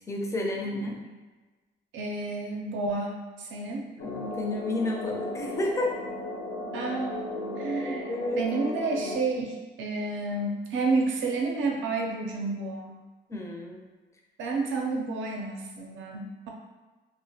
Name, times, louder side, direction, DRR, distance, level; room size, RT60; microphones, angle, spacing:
voice 1, 0.1-1.0 4.0-5.9 7.8-8.4 13.3-13.9, left 2 dB, 15° left, 0 dB, 0.4 m, -31 dB
voice 2, 1.9-3.8 6.7-7.2 7.6-13.0 14.4-16.5, right 3 dB, 75° right, 0 dB, 0.5 m, -30 dB
sound 1, 4.0-9.2, left 2 dB, 80° left, 0.7 m, -35 dB
2.3 x 2.0 x 2.7 m, 1.3 s
cardioid pair, 90°, 20 cm